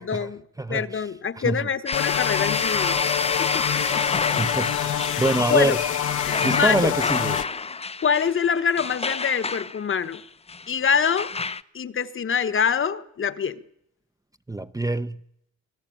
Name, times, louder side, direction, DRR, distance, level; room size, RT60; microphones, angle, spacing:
voice 1, 0.0-0.4 0.7-3.0 3.4-4.0 5.5-5.8 6.3-6.9 8.0-10.2 10.7-11.3 11.7-13.6, left 6 dB, 40° left, 1.3 m, -25 dB
voice 2, 1.4-1.7 4.3-5.8 6.4-7.4 14.5-15.2, right 2 dB, 10° right, 0.8 m, -25 dB
sound 1, 1.9-7.5, left 12 dB, 80° left, 1.4 m, -27 dB
sound 2, 1.9-11.6, left 4 dB, 20° left, 0.8 m, -28 dB
26.5 x 16.5 x 8.7 m
cardioid pair, 90°, 30 cm